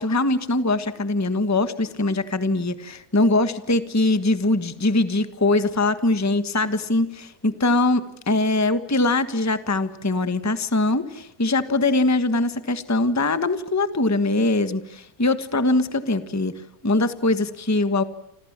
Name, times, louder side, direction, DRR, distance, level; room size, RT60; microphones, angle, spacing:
voice 1, 0.0-16.5 16.8-18.0, left 2 dB, 10° left, 11 dB, 1.2 m, -22 dB
29.5 x 27.5 x 7.4 m, 0.82 s
omnidirectional pair, 1.6 m